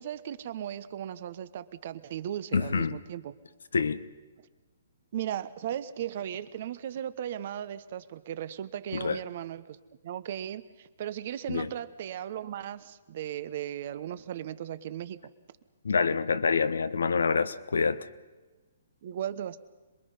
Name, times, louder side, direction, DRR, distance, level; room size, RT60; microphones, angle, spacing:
voice 1, 0.0-3.3 5.1-9.6 10.0-15.2 19.0-19.6, right 10 dB, 50° right, 1.1 m, -36 dB
voice 2, 2.5-3.0 3.7-4.1 8.9-9.2 11.5-11.7 15.8-18.0, left 5 dB, 85° left, 1.1 m, -26 dB
27.0 x 21.0 x 5.6 m
hypercardioid pair, 145°, 0 cm